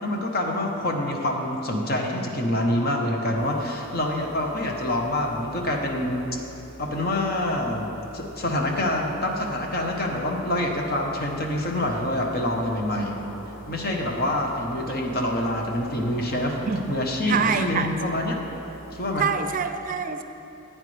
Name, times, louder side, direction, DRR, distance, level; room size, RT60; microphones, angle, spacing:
voice 1, 0.0-6.4 6.8-13.3 13.7-16.6 16.9-18.4 18.9-19.2, left 1 dB, 50° left, 1 dB, 1.1 m, -26 dB
sound 1, 3.4-19.2, right 1 dB, 85° left, 1.3 m, -45 dB
voice 2, 17.2-17.9 18.2-18.3 19.2-20.2, right 5 dB, 45° right, 8 dB, 0.5 m, -25 dB
15.0 x 8.9 x 3.3 m, 3.0 s
head